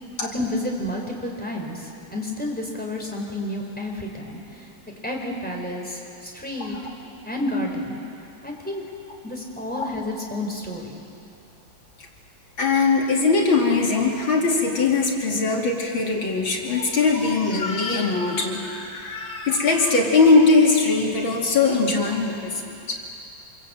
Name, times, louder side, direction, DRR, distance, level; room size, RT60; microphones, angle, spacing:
voice 1, 0.2-4.7 5.0-6.8 7.2-8.0 8.4-8.8 9.2-11.0, left 1 dB, 5° left, -1 dB, 4.1 m, -30 dB
voice 2, 12.6-23.0, left 4 dB, 70° left, -1 dB, 3.4 m, -21 dB
26.5 x 22.0 x 8.8 m, 2.6 s
omnidirectional pair, 2.2 m